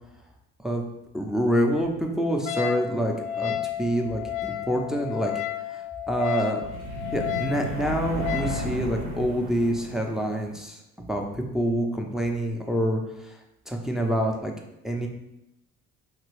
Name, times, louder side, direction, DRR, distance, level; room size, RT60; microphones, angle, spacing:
voice 1, 1.1-5.3 5.7-6.6 7.1-10.8 11.1-13.4 13.7-14.5 14.8-15.1, equal, ahead, 1 dB, 0.3 m, -27 dB
Wind instrument woodwind instrument, 2.5-8.6, left 11 dB, 65° left, 0.5 m, -32 dB
sound 1, 6.6-10.6, right 2 dB, 85° right, 0.6 m, -34 dB
2.9 x 2.9 x 3.0 m, 0.87 s
figure-of-eight pair, 55°, 44 cm